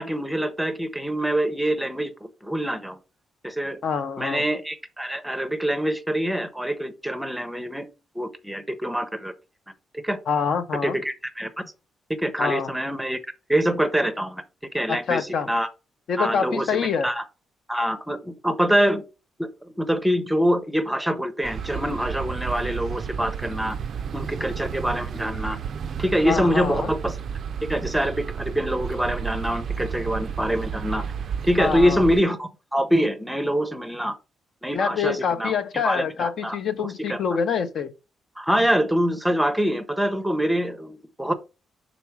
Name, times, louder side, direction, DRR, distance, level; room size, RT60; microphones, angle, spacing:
voice 1, 0.0-3.0 3.4-3.8 4.2-7.9 8.1-9.3 10.0-10.2 10.8-11.7 12.2-13.2 13.5-14.4 14.7-15.7 16.2-17.2 17.7-19.0 19.4-23.8 24.1-25.6 26.0-27.2 27.7-31.0 31.4-34.1 34.6-35.5 35.8-37.2 38.4-41.3, equal, 5° right, 0.6 m, -25 dB
voice 2, 3.8-4.4 10.3-11.0 12.4-12.7 14.9-15.5 16.1-17.1 26.3-26.9 31.6-32.0 34.7-37.9, left 6 dB, 60° left, 0.7 m, -26 dB
sound 1, 21.4-32.2, right 7 dB, 50° right, 0.3 m, -32 dB
5.9 x 4.0 x 4.6 m
cardioid pair, 155°, 0 cm